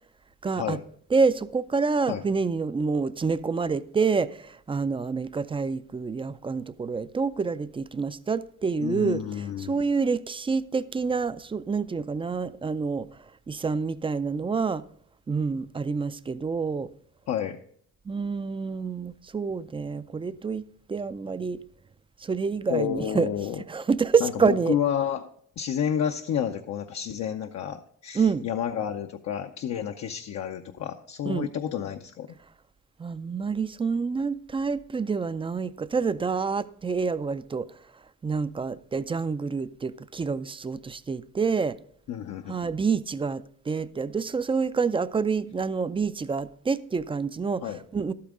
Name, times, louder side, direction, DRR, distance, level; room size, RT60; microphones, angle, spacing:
voice 1, 0.4-0.8 1.1-9.2 9.6-13.1 13.5-14.8 15.3-16.9 18.1-20.6 20.9-21.6 22.2-23.3 23.7-24.8 28.1-28.5 31.3-31.5 33.0-37.7 38.2-41.8 42.5-48.1, right 5 dB, 20° right, 0.3 m, -27 dB
voice 2, 8.8-9.8 17.3-17.6 22.7-23.6 24.2-25.3 25.6-32.3 42.1-42.6 47.6-47.8, left 9 dB, 65° left, 0.6 m, -30 dB
11.5 x 8.6 x 3.7 m
cardioid pair, 90°, 30 cm